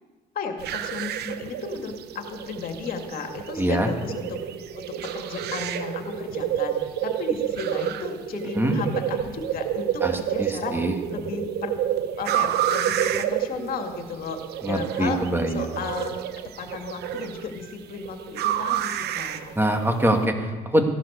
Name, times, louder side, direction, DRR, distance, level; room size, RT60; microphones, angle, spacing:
voice 1, 0.4-4.4 4.8-6.8 7.0-10.8 11.1-11.8 12.2-14.4 14.7-15.2 15.5-19.6, left 5 dB, 60° left, 4 dB, 2.2 m, -34 dB
sound 1, 0.6-20.2, right 11 dB, 75° right, 0.8 m, -29 dB
voice 2, 3.6-3.9 8.6-8.8 10.0-11.0 14.6-15.7 19.6-20.8, right 1 dB, 15° right, 4 dB, 2.1 m, -24 dB
16.0 x 12.0 x 6.7 m, 1.3 s
cardioid pair, 110°, 17 cm